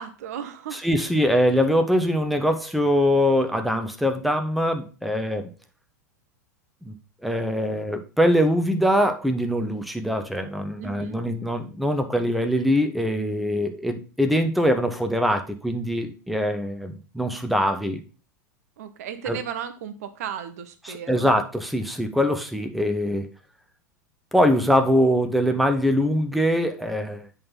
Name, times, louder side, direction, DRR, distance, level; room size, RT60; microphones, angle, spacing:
voice 1, 0.0-0.8 10.8-11.2 18.8-21.3, right 8 dB, 55° right, 10 dB, 0.8 m, -35 dB
voice 2, 0.7-5.5 6.8-6.9 7.2-18.0 19.3-19.4 20.8-23.3 24.3-27.3, equal, ahead, 6 dB, 0.8 m, -23 dB
8.7 x 4.1 x 4.0 m, 0.36 s
figure-of-eight pair, 85°, 10 cm